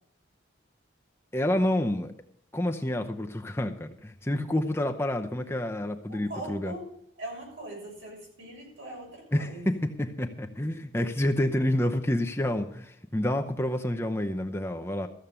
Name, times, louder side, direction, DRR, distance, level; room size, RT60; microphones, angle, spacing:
voice 1, 1.3-2.1 2.5-6.7 9.3-15.1, left 1 dB, 10° left, 4 dB, 0.7 m, -28 dB
voice 2, 6.1-6.9 7.2-9.8, right 1 dB, 80° right, -2 dB, 7.0 m, -41 dB
14.5 x 7.3 x 6.7 m, 0.72 s
head